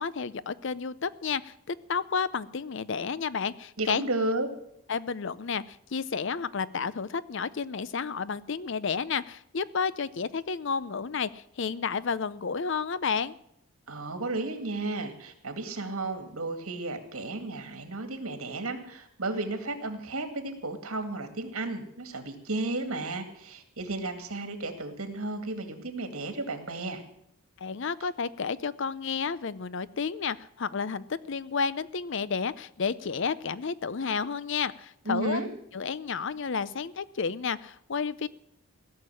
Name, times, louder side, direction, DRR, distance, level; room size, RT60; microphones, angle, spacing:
voice 1, 0.0-4.1 4.9-13.3 27.6-35.5 35.7-38.3, left 5 dB, 55° left, 17 dB, 0.5 m, -31 dB
voice 2, 3.8-4.5 13.9-27.0 35.1-35.5, right 2 dB, 80° right, 7 dB, 2.2 m, -33 dB
17.0 x 6.7 x 9.9 m, 0.74 s
head